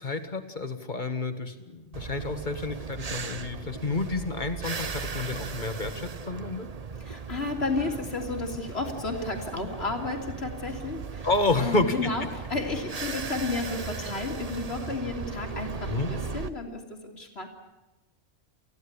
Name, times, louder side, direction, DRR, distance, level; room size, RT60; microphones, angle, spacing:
voice 1, 0.0-6.7 11.2-12.1 15.9-16.1, left 3 dB, 45° left, 7 dB, 2.0 m, -29 dB
sound 1, 1.9-16.5, right 5 dB, 35° right, 1.0 m, -37 dB
voice 2, 7.0-11.3 11.6-17.5, left 3 dB, 70° left, 2 dB, 3.4 m, -32 dB
28.5 x 15.5 x 10.0 m, 1.1 s
omnidirectional pair, 1.1 m